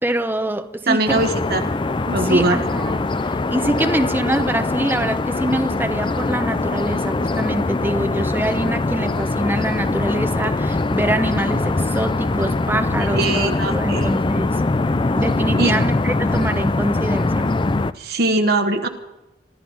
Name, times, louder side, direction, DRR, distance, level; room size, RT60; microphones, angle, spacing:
voice 1, 0.0-1.2 2.3-14.6 15.1-17.5, right 1 dB, 10° right, 0.9 m, -24 dB
voice 2, 0.9-1.7 2.1-2.7 13.2-14.1 15.6-15.7 18.0-18.9, right 2 dB, 60° right, 1.3 m, -20 dB
sound 1, 1.1-17.9, left 2 dB, 25° left, 0.5 m, -22 dB
26.0 x 13.0 x 4.0 m
head